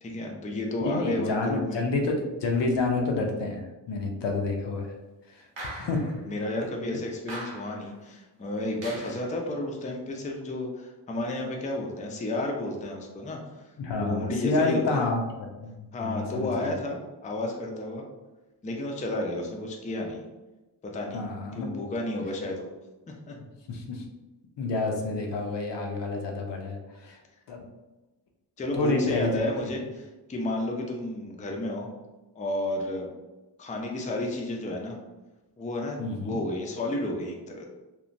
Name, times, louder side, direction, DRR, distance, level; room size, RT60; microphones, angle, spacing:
voice 1, 0.0-1.8 6.2-13.6 14.0-15.0 15.9-18.0 18.6-20.2 20.8-21.2 21.6-22.7 23.1-23.4 28.6-30.0 30.3-31.9 32.4-33.1 33.6-35.0 35.6-37.7, left 1 dB, 20° left, 0 dB, 0.3 m, -32 dB
voice 2, 0.8-4.9 5.3-6.2 9.0-9.1 13.8-16.8 21.1-21.7 23.7-24.0 24.6-27.2 27.5-27.6 28.7-29.5 36.0-36.4, left 3 dB, 85° left, 1 dB, 0.5 m, -29 dB
sound 1, 5.6-6.2 7.3-7.9 8.8-9.3, right 1 dB, 85° right, 0.7 m, -40 dB
2.9 x 2.1 x 2.5 m, 1.1 s
wide cardioid pair, 115°, 42 cm